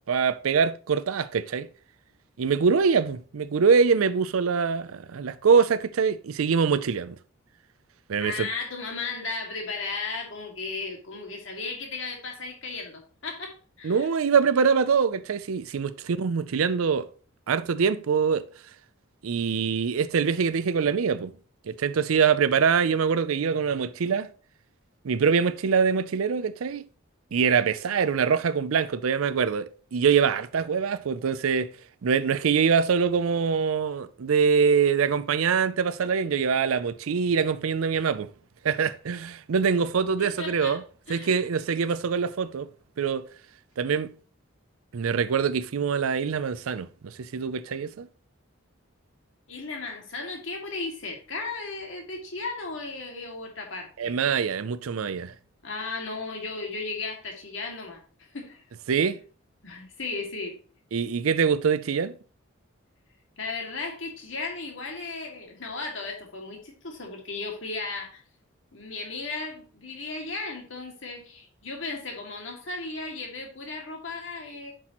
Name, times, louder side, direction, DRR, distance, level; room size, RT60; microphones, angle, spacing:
voice 1, 0.1-1.7 2.4-7.2 8.1-8.5 13.8-17.1 17.5-18.4 19.2-21.4 21.7-24.3 25.0-26.8 27.3-31.7 32.0-38.3 38.6-40.8 41.1-42.7 43.0-43.3 43.8-44.1 44.9-48.1 54.0-55.3 58.9-59.2 60.9-62.1, right 6 dB, 90° right, 0.5 m, -24 dB
voice 2, 8.2-14.1 40.2-40.8 41.1-41.4 49.5-54.2 55.6-58.6 59.6-60.6 63.4-68.2 68.7-74.7, left 3 dB, 70° left, 2.3 m, -35 dB
9.9 x 6.1 x 3.0 m
head